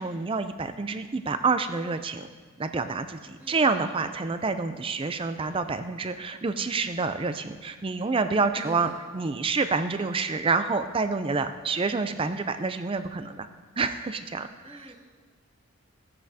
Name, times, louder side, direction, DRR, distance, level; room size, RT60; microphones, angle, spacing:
voice 1, 0.0-2.3 2.6-13.5 13.8-14.9, right 4 dB, 25° right, 10 dB, 0.4 m, -28 dB
voice 2, 3.4-3.8 8.0-8.1 8.6-9.0 14.6-14.9, right 1 dB, 10° right, -5 dB, 2.1 m, -45 dB
15.0 x 9.5 x 2.8 m, 1.5 s
head